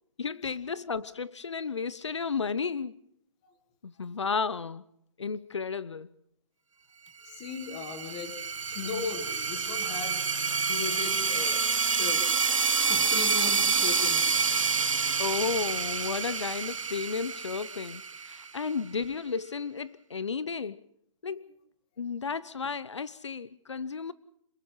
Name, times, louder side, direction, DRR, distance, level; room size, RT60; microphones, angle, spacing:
voice 1, 0.2-3.0 3.8-4.8 5.2-6.1 15.2-20.8 21.2-21.4 22.0-24.1, left 5 dB, 60° left, 0.8 m, -33 dB
voice 2, 7.2-8.3 8.6-10.2 10.5-11.6 11.9-12.4 12.7-14.2, left 6 dB, 10° left, 1.5 m, -38 dB
sound 1, 7.4-18.7, right 5 dB, 80° right, 1.3 m, -28 dB
27.5 x 21.0 x 5.6 m
hypercardioid pair, 180°, 16 cm